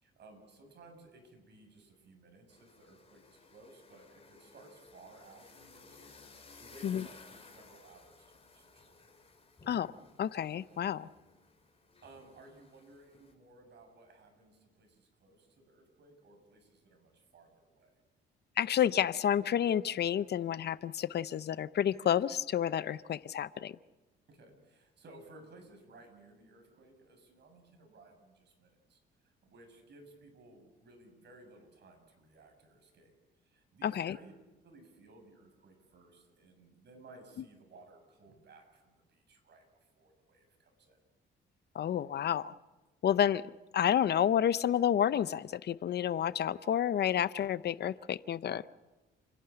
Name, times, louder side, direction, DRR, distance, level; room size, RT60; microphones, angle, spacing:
voice 1, 0.0-9.1 12.0-17.9 24.3-33.1 33.4-34.3 34.6-39.6 39.9-41.0, right 2 dB, 60° right, 4 dB, 7.4 m, -58 dB
sound 1, 2.5-13.3, left 4 dB, 30° left, 4.0 m, -58 dB
voice 2, 10.2-11.1 18.6-23.8 33.8-34.2 41.7-42.5 43.0-43.4 43.7-48.7, left 10 dB, 55° left, 16 dB, 0.7 m, -30 dB
30.0 x 11.5 x 10.0 m, 1.1 s
cardioid pair, 90°, 20 cm